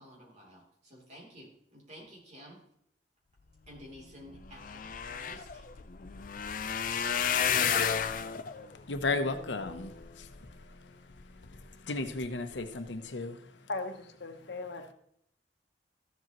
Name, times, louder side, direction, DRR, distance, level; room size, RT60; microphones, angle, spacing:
voice 1, 0.0-2.6 3.7-5.7, equal, 40° right, -2 dB, 3.2 m, -52 dB
sound 1, 4.0-4.1 4.3-10.6 11.2-11.6 12.1-12.3 12.5-12.6, left 7 dB, 50° left, 0.5 m, -32 dB
voice 2, 8.9-10.3 11.9-13.4, left 3 dB, 90° left, 9 dB, 0.8 m, -34 dB
voice 3, 13.7-14.9, left 3 dB, 70° left, 5 dB, 1.1 m, -38 dB
13.5 x 7.6 x 3.0 m, 0.71 s
head